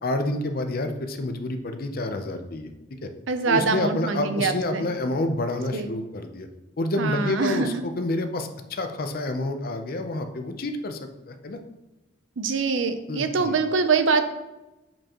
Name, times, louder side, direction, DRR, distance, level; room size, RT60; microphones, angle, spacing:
voice 1, 0.0-2.7 3.0-3.1 3.5-6.5 6.8-11.6 13.1-13.6, left 2 dB, 50° left, 7 dB, 0.6 m, -28 dB
voice 2, 3.3-4.9 5.7-5.9 7.0-7.8 12.4-14.2, right 4 dB, 85° right, 9 dB, 0.6 m, -24 dB
7.6 x 4.4 x 3.0 m, 1.0 s
head